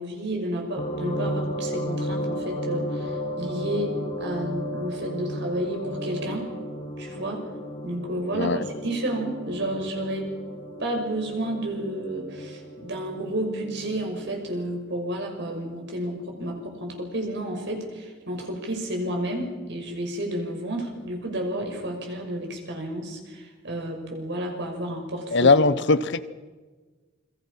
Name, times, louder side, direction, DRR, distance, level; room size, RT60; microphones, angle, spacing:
voice 1, 0.0-6.5 7.0-7.4 7.8-10.3 10.8-25.6, right 1 dB, 60° right, 3 dB, 5.8 m, -31 dB
sound 1, 0.8-14.5, equal, 35° left, 2.5 m, -34 dB
voice 2, 25.3-26.3, left 3 dB, 65° left, 15 dB, 1.0 m, -20 dB
28.5 x 23.5 x 5.7 m, 1.3 s
head